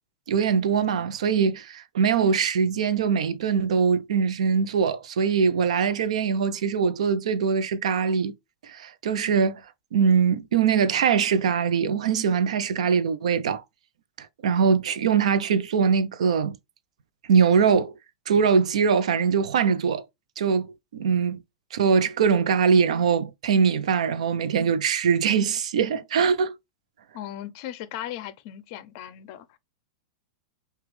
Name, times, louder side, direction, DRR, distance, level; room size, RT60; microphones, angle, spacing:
voice 1, 0.3-8.3 8.6-9.6 9.9-13.6 14.4-16.6 17.3-17.9 18.3-20.0 20.4-20.7 20.9-21.4 21.7-26.6, right 6 dB, 90° right, 0.6 m, -22 dB
voice 2, 27.1-29.6, left 12 dB, 40° left, 0.5 m, -37 dB
6.0 x 2.3 x 3.2 m
supercardioid pair, 160°, 3 cm